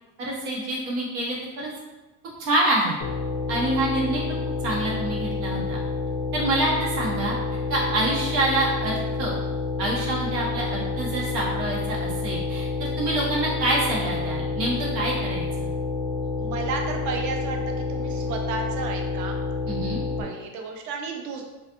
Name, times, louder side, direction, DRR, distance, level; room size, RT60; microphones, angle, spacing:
voice 1, 0.2-1.7 2.4-3.0 3.5-4.4 4.6-5.8 6.3-7.4 7.7-9.3 9.8-15.7 19.7-20.0, right 1 dB, 90° right, -4 dB, 1.1 m, -26 dB
sound 1, 3.0-20.2, left 3 dB, 25° left, 0.3 m, -29 dB
voice 2, 16.4-19.4 20.2-21.4, right 4 dB, 40° right, 2 dB, 0.5 m, -32 dB
2.5 x 2.4 x 2.5 m, 1.1 s
supercardioid pair, 115°, 47 cm